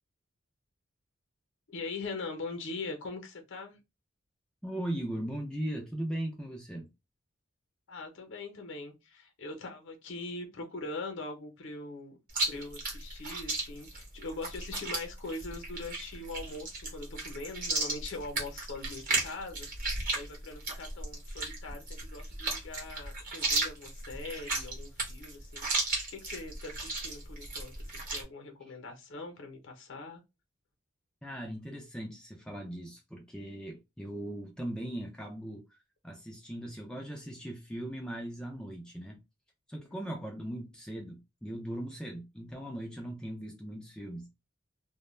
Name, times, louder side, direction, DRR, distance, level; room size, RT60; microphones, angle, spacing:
voice 1, 1.7-3.8 7.9-12.2 12.5-19.7 20.1-30.2 39.8-40.0, left 3 dB, 60° left, 0.6 m, -42 dB
voice 2, 4.6-6.9 31.2-35.6 36.0-39.2 39.7-44.3, right 1 dB, 5° left, 0.3 m, -39 dB
Chewing mastication, 12.3-28.2, right 2 dB, 40° right, 0.9 m, -35 dB
2.2 x 2.1 x 3.0 m
head